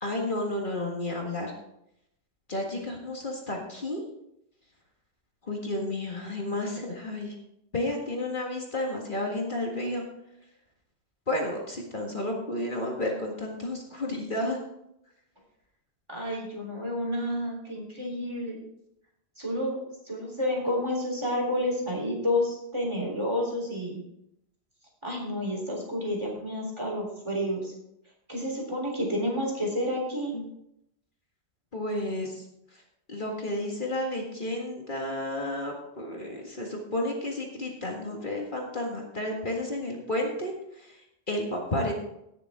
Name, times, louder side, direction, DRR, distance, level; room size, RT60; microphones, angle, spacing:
voice 1, 0.0-1.5 2.5-4.0 5.4-7.3 7.7-10.0 11.3-14.6 30.3-30.5 31.7-32.4 33.1-41.0 41.3-41.9, left 1 dB, 50° left, 0 dB, 2.0 m, -31 dB
voice 2, 16.1-18.6 19.4-19.8 20.0-24.0 25.0-27.7 28.3-30.3, left 1 dB, 25° right, -2 dB, 3.7 m, -30 dB
18.0 x 6.9 x 3.6 m, 0.80 s
omnidirectional pair, 1.1 m